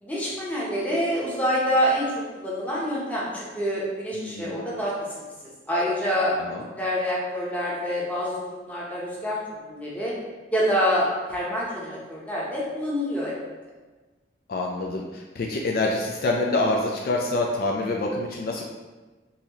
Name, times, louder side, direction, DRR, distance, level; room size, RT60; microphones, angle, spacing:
voice 1, 0.0-4.9 5.7-9.4 9.7-10.1 10.5-13.3, equal, 10° left, -6 dB, 0.8 m, -26 dB
voice 2, 4.1-4.6 6.4-6.7 14.5-18.6, left 2 dB, 55° left, 0 dB, 0.3 m, -26 dB
3.9 x 2.7 x 2.9 m, 1.2 s
head